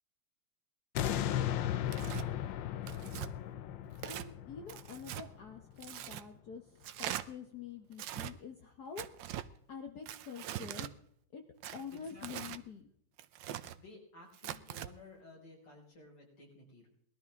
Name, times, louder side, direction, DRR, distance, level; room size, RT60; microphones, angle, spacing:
sound 1, 0.9-6.1 6.5-6.6, left 11 dB, 70° left, 1.3 m, -36 dB
Tearing, 1.9-2.3 2.9-3.3 4.0-4.3 4.7-5.3 5.8-6.2 6.8-7.2 7.9-8.3 9.0-9.5 10.1-10.9 11.6-12.6 13.2-13.8 14.3-14.9, right 12 dB, 70° right, 1.2 m, -42 dB
voice 1, 4.0-9.1 9.7-10.9 11.3-11.4 11.7-12.9, left 6 dB, 55° left, 5 dB, 1.5 m, -47 dB
voice 2, 11.9-12.3 13.8-16.9, left 2 dB, 90° left, -2 dB, 6.3 m, -55 dB
20.0 x 13.0 x 3.6 m, 0.67 s
omnidirectional pair, 2.4 m